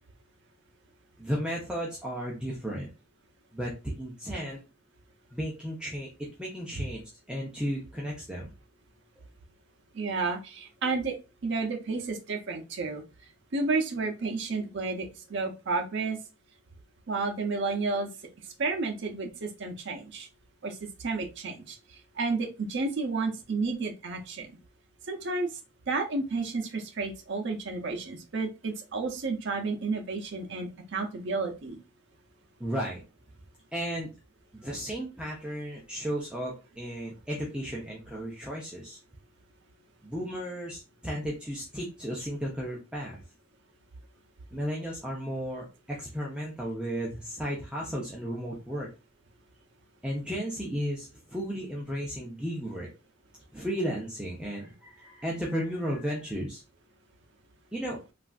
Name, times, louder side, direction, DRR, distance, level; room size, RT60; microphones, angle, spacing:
voice 1, 1.2-2.9 3.5-4.6 5.3-7.0 7.3-8.5 32.6-33.0 33.7-34.1 34.5-39.0 40.0-43.2 44.5-48.9 50.0-52.9 53.5-56.6 57.7-58.0, equal, 5° right, -3 dB, 0.6 m, -34 dB
voice 2, 9.9-11.1 11.4-13.0 13.5-16.2 17.1-18.1 18.6-20.3 20.6-21.8 22.2-24.6 25.1-25.5 25.9-31.8, right 3 dB, 60° right, 3 dB, 0.6 m, -31 dB
3.2 x 2.4 x 2.3 m, 0.28 s
head